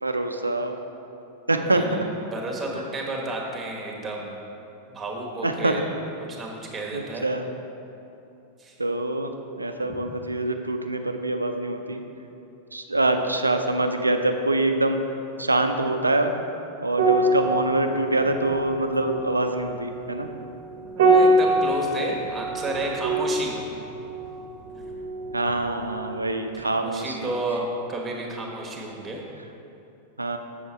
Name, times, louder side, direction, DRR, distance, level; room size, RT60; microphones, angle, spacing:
voice 1, 0.0-0.8 1.5-2.1 2.7-2.8 5.4-5.8 6.9-7.5 8.8-12.0 12.7-15.0 15.4-16.3 16.8-20.3 25.3-27.3 30.2-30.4, right 2 dB, 80° right, 6 dB, 0.5 m, -25 dB
voice 2, 1.7-4.3 4.9-5.9 6.4-7.2 8.6-8.7 9.9-10.0 20.8-23.6 26.5-29.2, right 2 dB, 15° right, -1 dB, 1.3 m, -32 dB
sound 1, 16.9-25.7 25.9-26.2, right 2 dB, 60° right, 0.8 m, -25 dB
7.0 x 6.9 x 4.3 m, 2.8 s
figure-of-eight pair, 90°, 0 cm